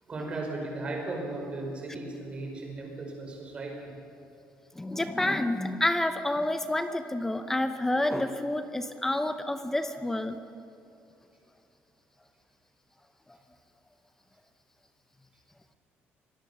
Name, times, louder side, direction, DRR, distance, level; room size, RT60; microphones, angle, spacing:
voice 1, 0.1-3.9, right 2 dB, 25° right, 1 dB, 5.2 m, -36 dB
voice 2, 4.8-10.4, left 1 dB, 10° left, 9 dB, 0.7 m, -29 dB
25.5 x 19.0 x 7.0 m, 2.8 s
cardioid pair, 175°, 4 cm